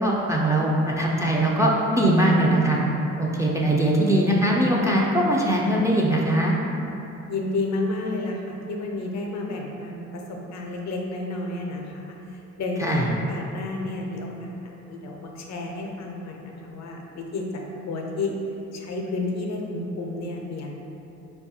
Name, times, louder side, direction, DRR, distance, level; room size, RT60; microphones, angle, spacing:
voice 1, 0.0-2.8 3.2-6.6 12.8-13.1, right 1 dB, 10° right, -4 dB, 0.3 m, -21 dB
voice 2, 7.3-14.5 14.9-18.3 18.7-20.7, left 2 dB, 65° left, 1 dB, 0.5 m, -31 dB
4.0 x 2.3 x 2.7 m, 2.9 s
cardioid pair, 90°, 30 cm